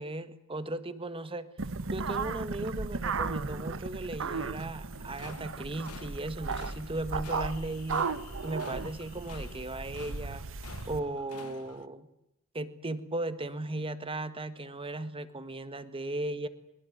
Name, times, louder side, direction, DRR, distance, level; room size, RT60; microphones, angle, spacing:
voice 1, 0.0-1.5 1.9-8.1 8.4-10.5 10.9-12.1 12.5-16.5, right 2 dB, 25° right, 11 dB, 1.6 m, -36 dB
sound 1, 1.6-11.0, right 4 dB, 65° right, 1.2 m, -35 dB
sound 2, 4.9-11.9, left 5 dB, 80° left, 1.2 m, -50 dB
22.5 x 21.5 x 9.2 m, 0.86 s
head